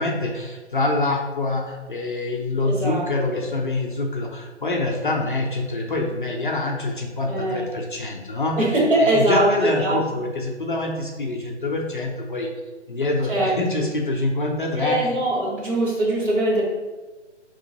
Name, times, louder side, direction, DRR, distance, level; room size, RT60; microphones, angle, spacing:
voice 1, 0.0-8.7 9.0-12.5 12.9-15.1, left 2 dB, 45° left, 1 dB, 0.5 m, -25 dB
voice 2, 2.6-3.1 7.3-7.7 8.6-10.0 13.3-13.8 14.8-16.6, right 1 dB, 45° right, -4 dB, 1.4 m, -22 dB
4.9 x 3.0 x 2.7 m, 1.2 s
hypercardioid pair, 160°, 36 cm